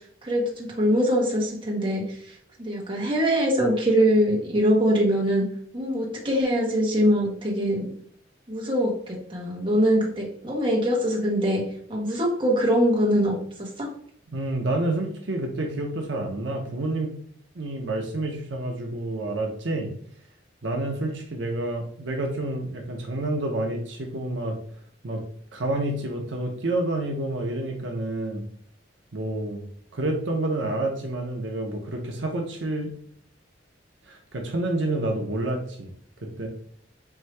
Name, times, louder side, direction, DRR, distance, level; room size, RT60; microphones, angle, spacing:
voice 1, 0.2-2.0 2.6-5.5 5.7-7.9 8.5-13.9, equal, 25° right, -3 dB, 1.1 m, -23 dB
voice 2, 14.3-17.2 17.5-19.9 20.6-24.6 25.0-25.2 25.5-28.4 29.1-29.6 29.9-33.0 34.1-35.9 36.2-36.5, right 2 dB, 75° right, 2 dB, 0.8 m, -29 dB
4.6 x 2.7 x 3.2 m, 0.63 s
head